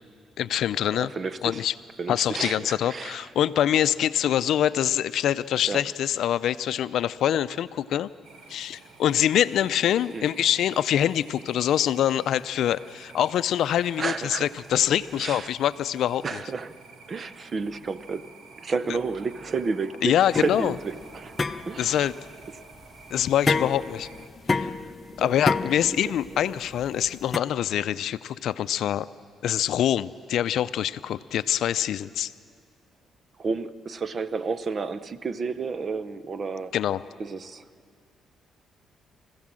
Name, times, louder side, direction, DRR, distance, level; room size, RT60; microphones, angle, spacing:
voice 1, 0.4-1.1 1.4-1.7 2.1-8.1 8.5-16.4 20.0-20.7 21.8-22.1 23.1-24.1 24.5-24.8 25.2-29.1 29.4-32.3 36.7-37.0, left 11 dB, 75° left, 15 dB, 0.5 m, -25 dB
voice 2, 1.0-1.6 2.0-3.3 5.7-5.8 10.1-10.3 14.0-14.5 15.1-15.5 16.2-16.7 17.1-18.3 18.6-21.3 21.6-22.1 25.2-25.3 25.8-26.0 26.3-26.4 33.4-36.7 37.2-37.6, right 4 dB, 40° right, 14 dB, 0.8 m, -31 dB
sound 1, 8.2-24.3, right 5 dB, 70° right, 1.5 m, -50 dB
sound 2, 17.4-17.9 18.8-19.5 20.1-20.8, right 2 dB, 25° right, 7.7 m, -60 dB
sound 3, 20.3-27.4, left 4 dB, 30° left, 0.6 m, -29 dB
24.5 x 15.5 x 7.6 m, 2.2 s
cardioid pair, 90°, 0 cm